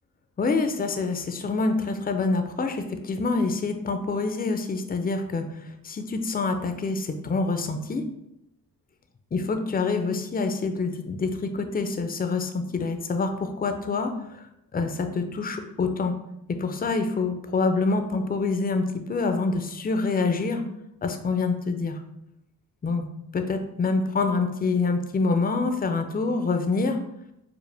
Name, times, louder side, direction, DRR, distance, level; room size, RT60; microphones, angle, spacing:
voice 1, 0.4-8.0 9.3-14.4 14.7-16.1 16.5-20.6 21.0-22.0 22.8-23.1 23.3-27.0, left 3 dB, 20° left, 6 dB, 0.5 m, -26 dB
4.8 x 2.1 x 3.3 m, 0.85 s
cardioid pair, 50°, 42 cm